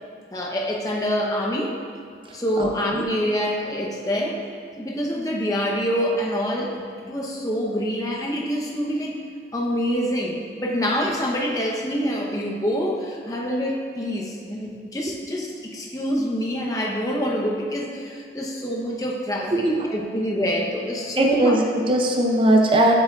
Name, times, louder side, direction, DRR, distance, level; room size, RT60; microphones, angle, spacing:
voice 1, 0.3-1.7 2.3-4.4 4.8-9.2 9.5-21.5, equal, 20° left, -2 dB, 0.7 m, -26 dB
voice 2, 2.3-3.0 19.5-19.6 21.2-22.9, right 1 dB, 30° right, 1 dB, 0.6 m, -20 dB
7.7 x 6.8 x 2.3 m, 2.3 s
head